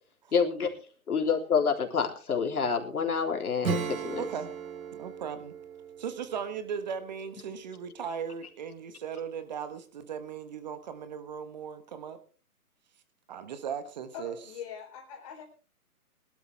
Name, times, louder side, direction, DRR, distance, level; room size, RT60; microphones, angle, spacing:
voice 1, 0.3-0.8 1.1-4.3, left 6 dB, 70° left, 3.7 m, -28 dB
Acoustic guitar / Strum, 3.6-7.9, right 6 dB, 65° right, 2.5 m, -37 dB
voice 2, 4.2-4.5 4.9-5.5 6.0-12.2 13.3-14.4, right 7 dB, 30° right, 1.4 m, -37 dB
voice 3, 14.1-15.4, left 8 dB, 25° left, 3.9 m, -42 dB
21.0 x 12.5 x 3.5 m
hypercardioid pair, 165°, 45 cm